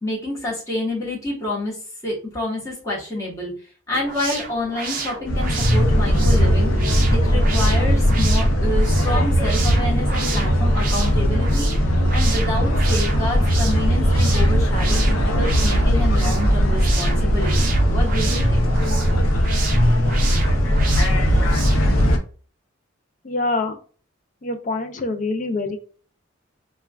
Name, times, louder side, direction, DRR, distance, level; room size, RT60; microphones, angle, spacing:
voice 1, 0.0-6.7 7.1-18.7, left 1 dB, 15° left, -5 dB, 1.1 m, -28 dB
sound 1, 3.9-22.0, right 5 dB, 40° right, 0.5 m, -32 dB
sound 2, 5.3-22.2, equal, 90° left, 0.6 m, -18 dB
voice 2, 23.2-23.8 24.4-25.8, left 3 dB, 40° left, 7 dB, 0.3 m, -25 dB
3.3 x 2.2 x 2.3 m, 0.41 s
head